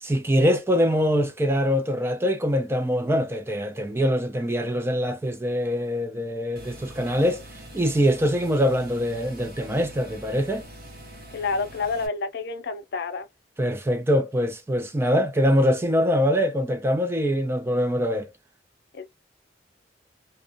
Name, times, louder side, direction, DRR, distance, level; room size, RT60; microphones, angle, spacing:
voice 1, 0.0-7.4 7.7-10.6 13.6-18.3, equal, 15° right, 0.3 m, -23 dB
sound 1, 6.6-12.1, right 1 dB, 55° right, 0.8 m, -44 dB
voice 2, 11.3-13.3 18.9-19.1, left 4 dB, 60° left, 0.5 m, -29 dB
2.5 x 2.1 x 2.4 m
head